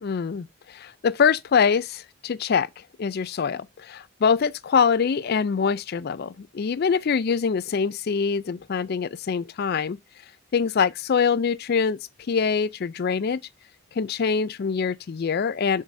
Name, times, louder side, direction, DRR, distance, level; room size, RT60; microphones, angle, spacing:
voice 1, 0.0-2.7 3.0-10.0 10.5-12.0 12.3-13.4 14.0-15.8, left 6 dB, 45° left, 0.4 m, -24 dB
7.3 x 6.3 x 2.6 m
head